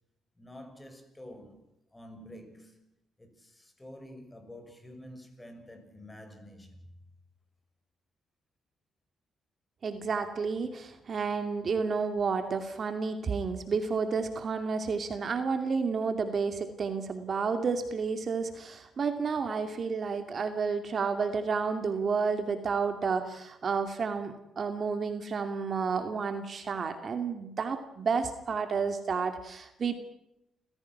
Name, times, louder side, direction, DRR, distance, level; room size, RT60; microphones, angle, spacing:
voice 1, 0.4-2.8 3.2-6.9, left 1 dB, 15° left, 6.0 m, -49 dB
voice 2, 9.8-29.9, right 5 dB, 45° right, 2.5 m, -31 dB
29.5 x 16.0 x 6.1 m
cardioid pair, 90°, 0 cm